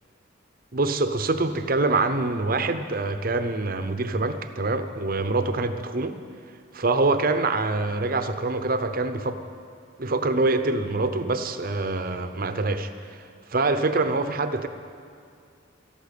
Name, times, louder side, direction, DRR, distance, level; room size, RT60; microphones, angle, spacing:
voice 1, 0.7-6.2 6.7-9.4 10.0-14.7, right 3 dB, 45° right, 9 dB, 0.8 m, -25 dB
13.5 x 12.0 x 8.3 m, 2.3 s
head